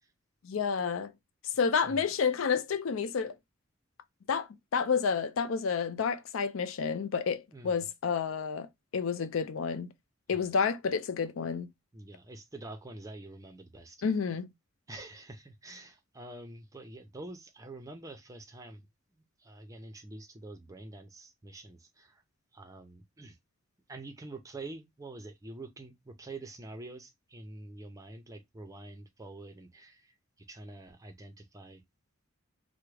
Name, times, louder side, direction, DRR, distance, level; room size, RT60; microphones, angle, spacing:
voice 1, 0.4-1.1 1.6-3.3 4.3-4.5 4.7-9.9 10.3-11.7 14.0-14.5, left 6 dB, 75° left, 0.4 m, -30 dB
voice 2, 7.5-7.8 10.3-10.5 11.9-14.0 14.9-18.9 19.1-22.2 22.5-23.4 23.9-31.8, right 2 dB, 15° right, 0.5 m, -46 dB
3.5 x 2.1 x 3.2 m
head